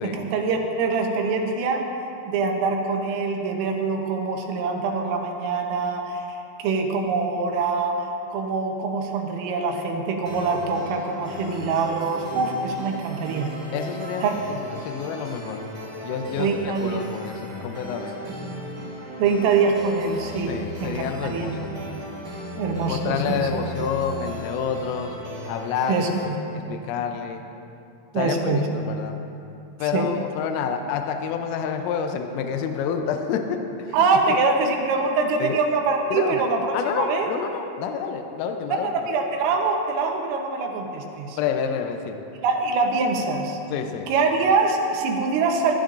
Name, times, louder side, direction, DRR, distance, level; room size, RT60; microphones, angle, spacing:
voice 1, 0.0-1.9 2.3-6.2 6.6-13.5 14.2-14.4 16.4-17.0 19.2-21.6 22.6-23.5 25.9-26.4 28.2-28.7 29.9-30.1 33.9-37.3 38.8-41.4 42.4-43.6 44.1-45.7, right 4 dB, 80° right, 2 dB, 3.6 m, -24 dB
sound 1, 10.2-26.2, equal, 20° right, 2.2 m, -36 dB
voice 2, 13.7-15.6 16.0-18.3 20.5-21.7 22.9-25.2 25.5-27.4 28.1-29.2 29.8-34.0 34.3-34.4 35.4-35.6 36.1-36.4 36.7-38.9 41.3-42.2 43.7-44.1, left 7 dB, 80° left, 5 dB, 3.4 m, -29 dB
20.0 x 14.0 x 2.6 m, 2.8 s
omnidirectional pair, 6.0 m